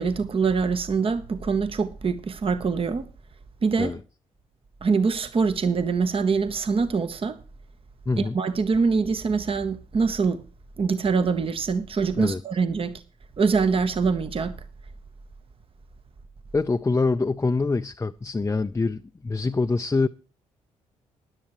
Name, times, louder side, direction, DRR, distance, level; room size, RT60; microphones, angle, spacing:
voice 1, 0.0-3.1 3.6-4.0 4.8-7.4 8.2-10.4 10.8-13.0 13.4-14.6, right 5 dB, 35° right, 1.0 m, -24 dB
voice 2, 16.5-20.1, left 3 dB, 20° left, 0.5 m, -25 dB
16.5 x 10.5 x 3.1 m
hypercardioid pair, 45°, 15 cm